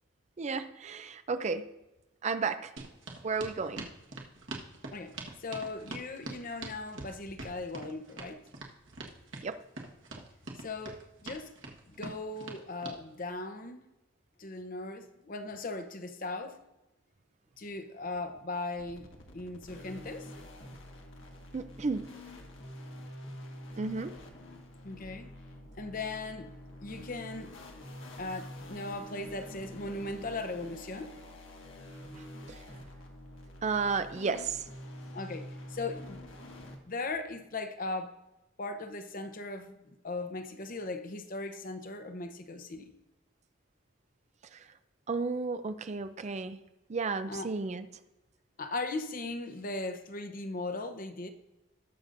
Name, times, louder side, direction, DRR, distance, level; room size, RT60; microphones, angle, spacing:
voice 1, 0.4-1.7 2.2-2.7 3.2-3.9 9.4-9.6 21.5-22.1 23.8-24.1 32.2-32.6 33.6-34.7 44.5-44.6 45.1-46.6 46.9-47.9, right 4 dB, 35° right, 0.4 m, -33 dB
sound 1, 2.8-13.0, right 2 dB, 65° right, 1.5 m, -43 dB
voice 2, 4.9-8.4 10.6-11.5 11.9-13.8 14.4-16.6 17.6-20.3 24.8-25.3 25.8-26.5 26.8-27.6 28.2-31.4 35.1-36.2 36.9-38.1 38.6-42.9 47.3-47.5 48.6-51.3, left 2 dB, 45° left, 0.8 m, -38 dB
sound 2, 18.8-36.8, left 1 dB, 70° left, 1.6 m, -47 dB
19.5 x 6.7 x 2.6 m
head